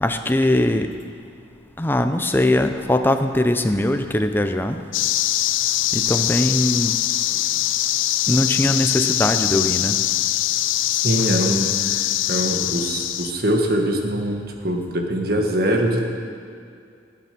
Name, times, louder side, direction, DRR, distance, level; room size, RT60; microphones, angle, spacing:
voice 1, 0.0-0.9 1.8-4.8 5.9-6.9 8.3-10.0, left 1 dB, 10° left, 7 dB, 0.6 m, -20 dB
sound 1, 4.9-13.3, left 14 dB, 90° left, 0.4 m, -22 dB
voice 2, 11.0-16.0, right 1 dB, 50° right, 2 dB, 1.6 m, -23 dB
17.5 x 8.5 x 6.0 m, 2.3 s
head